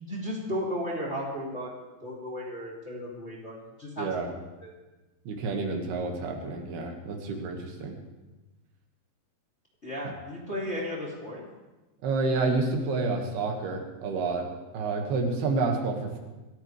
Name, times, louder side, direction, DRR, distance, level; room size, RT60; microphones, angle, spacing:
voice 1, 0.1-1.7 2.0-4.1 4.6-4.7 9.8-11.4, equal, 20° left, -4 dB, 2.3 m, -34 dB
voice 2, 4.0-4.3 5.3-8.0 12.0-14.5 14.7-16.2, right 3 dB, 75° right, 2 dB, 3.6 m, -29 dB
25.0 x 13.5 x 3.3 m, 1.1 s
omnidirectional pair, 4.8 m